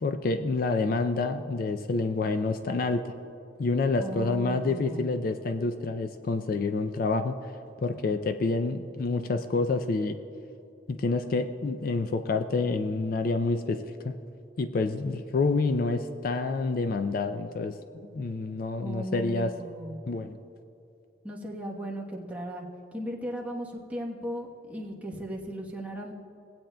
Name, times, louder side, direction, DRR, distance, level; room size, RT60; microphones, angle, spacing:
voice 1, 0.0-3.1 3.6-7.4 7.8-10.2 10.9-14.1 14.6-17.7 18.1-19.5 20.1-20.4, left 3 dB, 45° left, 8 dB, 0.3 m, -28 dB
voice 2, 4.0-5.1 18.8-20.0 21.2-22.7 22.9-26.1, equal, 5° right, -3 dB, 1.0 m, -36 dB
18.0 x 8.7 x 2.2 m, 2.8 s
head